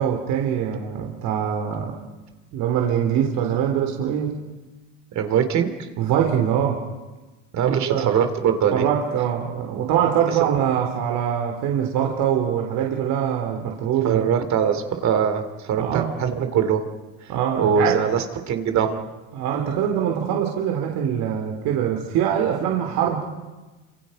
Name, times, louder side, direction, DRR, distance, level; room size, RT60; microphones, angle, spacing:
voice 1, 0.0-1.9 2.5-4.4 6.0-6.8 7.9-8.1 8.7-14.3 15.8-16.1 17.3-18.0 19.3-23.2, right 9 dB, 60° right, 1 dB, 3.4 m, -23 dB
voice 2, 5.1-5.7 7.5-8.9 10.3-10.4 14.0-16.9 17.2-19.0, right 7 dB, 45° right, 8 dB, 2.9 m, -22 dB
28.0 x 27.0 x 5.3 m, 1.2 s
supercardioid pair, 125°, 39 cm